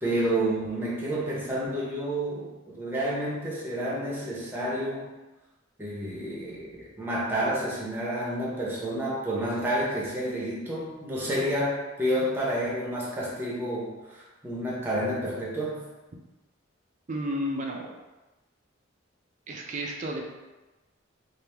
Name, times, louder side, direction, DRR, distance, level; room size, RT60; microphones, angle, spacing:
voice 1, 0.0-5.0 5.8-15.8, right 1 dB, 10° right, -5 dB, 0.8 m, -30 dB
voice 2, 17.1-17.9 19.5-20.2, equal, 40° right, 0 dB, 0.4 m, -32 dB
3.4 x 2.5 x 3.3 m, 1.1 s
head